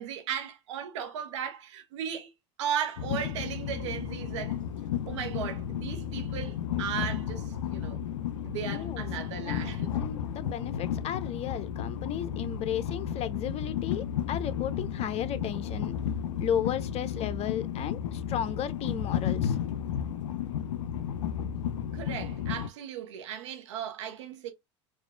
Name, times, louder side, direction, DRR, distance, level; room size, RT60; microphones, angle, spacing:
voice 1, 0.0-2.3 2.6-4.6 5.1-8.0 8.4-10.0 21.9-24.5, right 9 dB, 75° right, 1.0 m, -36 dB
Train, 3.0-22.7, left 9 dB, 85° left, 0.4 m, -33 dB
voice 2, 8.6-9.0 9.4-9.6 9.9-16.0 16.4-19.6, left 9 dB, 40° left, 0.7 m, -34 dB
4.1 x 2.5 x 2.2 m
hypercardioid pair, 80°, 15 cm